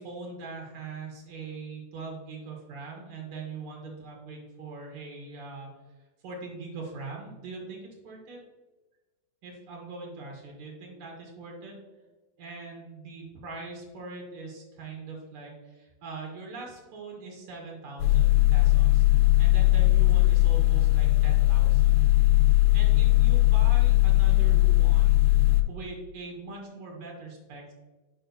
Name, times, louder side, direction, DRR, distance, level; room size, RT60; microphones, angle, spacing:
voice 1, 0.0-5.7 6.2-8.4 9.4-11.7 12.4-19.0 19.4-22.1 22.7-25.2 25.7-27.7, right 3 dB, 85° right, 0 dB, 1.2 m, -41 dB
sound 1, 18.0-25.6, left 17 dB, 85° left, 2.5 m, -20 dB
8.7 x 4.8 x 2.7 m, 1.2 s
omnidirectional pair, 4.3 m